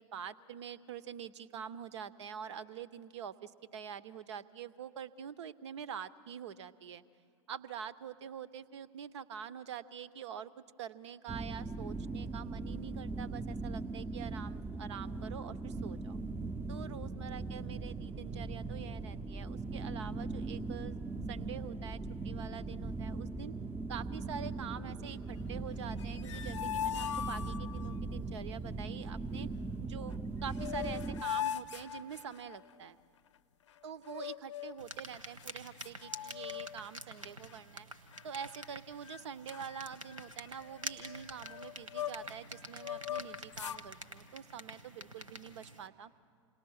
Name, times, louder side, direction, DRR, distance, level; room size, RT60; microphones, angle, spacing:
voice 1, 0.0-7.0 7.5-16.2 16.7-21.0 21.3-23.5 23.9-29.5 29.8-33.0 33.8-37.9 38.2-46.1, right 8 dB, 60° right, 17 dB, 0.8 m, -45 dB
sound 1, 11.3-31.2, right 3 dB, 10° right, 0.7 m, -40 dB
sound 2, 25.9-27.9 30.1-30.2 30.5-32.7 34.0-34.9 35.4-35.5 35.8-36.9 37.2-37.5 38.1-38.7 39.0-39.2 39.5-42.4 42.8-43.8, left 10 dB, 65° left, 0.6 m, -40 dB
sound 3, 34.8-45.9, right 1 dB, 85° right, 1.3 m, -48 dB
27.5 x 19.0 x 6.3 m, 2.2 s
figure-of-eight pair, 90°, 16 cm